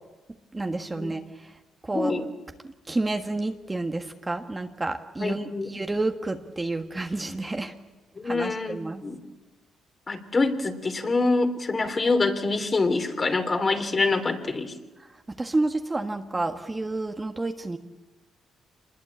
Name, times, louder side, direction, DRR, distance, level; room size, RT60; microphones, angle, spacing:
voice 1, 0.5-1.5 1.8-2.2 2.9-7.7 8.2-9.0 15.3-17.8, right 2 dB, 20° right, 5 dB, 1.5 m, -30 dB
voice 2, 1.9-2.3 5.2-5.7 8.1-9.2 10.1-14.7, left 3 dB, 35° left, 6 dB, 3.3 m, -25 dB
27.0 x 21.0 x 8.4 m, 1.2 s
cardioid pair, 85°, 0 cm